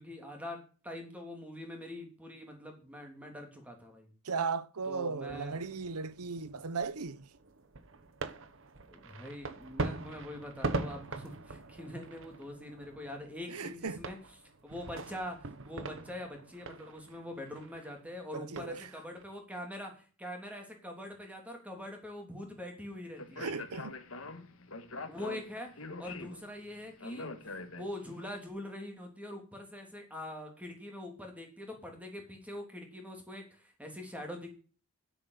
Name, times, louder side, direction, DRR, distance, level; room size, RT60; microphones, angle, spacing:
voice 1, 0.0-4.1 4.9-5.6 8.9-14.2 14.6-23.5 25.1-27.3 27.7-34.6, left 1 dB, 5° right, 3.2 m, -44 dB
voice 2, 4.2-7.3 13.5-14.0 18.3-18.9 23.4-24.0, right 5 dB, 85° right, 0.9 m, -36 dB
sound 1, 5.2-19.2, right 3 dB, 60° right, 1.2 m, -42 dB
Speech, 23.2-28.2, left 3 dB, 65° left, 1.8 m, -44 dB
10.5 x 8.1 x 8.1 m
head